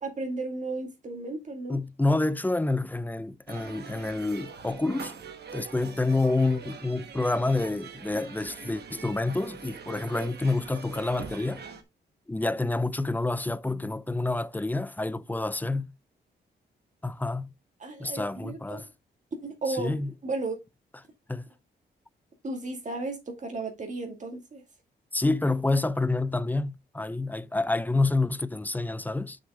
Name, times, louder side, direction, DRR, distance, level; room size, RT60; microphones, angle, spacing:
voice 1, 0.0-1.8 17.8-18.8 19.4-19.9 20.2-20.6 22.4-24.6, right 3 dB, 40° right, 2.2 m, -34 dB
voice 2, 1.7-5.1 5.5-11.6 12.3-15.9 17.0-17.5 18.0-18.9 19.7-20.1 21.3-21.5 25.1-29.4, left 2 dB, 10° left, 0.6 m, -28 dB
sound 1, 3.5-11.8, right 6 dB, 65° right, 1.4 m, -43 dB
6.6 x 6.1 x 3.6 m
cardioid pair, 90°, 18 cm